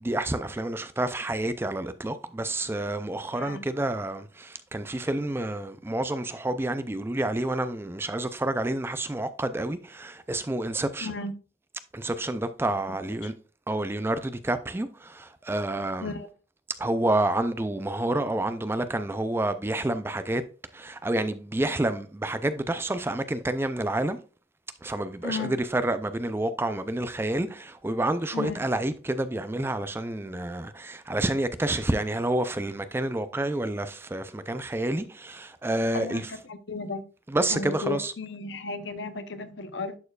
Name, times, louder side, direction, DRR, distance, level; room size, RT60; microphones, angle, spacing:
voice 1, 0.0-11.1 11.9-13.3 13.7-16.1 16.8-20.4 20.7-24.2 24.8-36.2 37.3-38.1, right 1 dB, 15° right, 0.4 m, -29 dB
voice 2, 3.3-3.6 11.0-11.3 12.9-13.0 13.2-13.3 16.0-16.3 25.2-25.6 28.3-28.6 35.9-37.0 37.5-40.0, left 3 dB, 75° left, 0.7 m, -34 dB
11.0 x 4.4 x 2.4 m
head